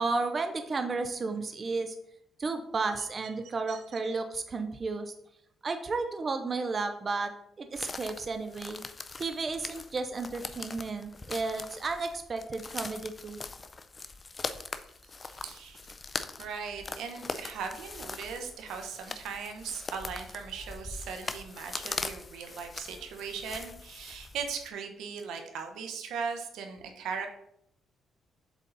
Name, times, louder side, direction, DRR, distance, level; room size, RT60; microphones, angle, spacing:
voice 1, 0.0-1.9 2.4-5.1 5.6-7.3 7.6-8.8 9.2-13.4, right 3 dB, 35° right, 7 dB, 0.6 m, -33 dB
sound 1, 7.7-24.7, left 3 dB, 30° left, 0.5 m, -41 dB
voice 2, 15.2-15.8 16.4-27.3, right 6 dB, 85° right, 5 dB, 1.0 m, -38 dB
7.3 x 4.0 x 4.0 m, 0.75 s
cardioid pair, 90°, 0 cm